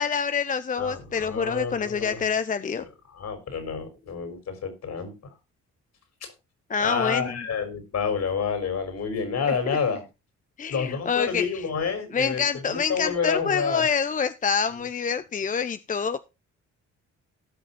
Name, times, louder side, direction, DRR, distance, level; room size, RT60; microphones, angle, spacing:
voice 1, 0.0-2.8 6.7-7.3 9.7-9.8 10.6-11.6 12.1-16.3, left 6 dB, 25° left, 12 dB, 0.6 m, -26 dB
voice 2, 0.8-2.3 2.8-5.1 6.2-6.3 6.8-10.0 10.7-12.4 12.7-13.8, left 6 dB, 60° left, 8 dB, 4.2 m, -29 dB
17.5 x 5.9 x 4.1 m, 0.27 s
cardioid pair, 90°, 30 cm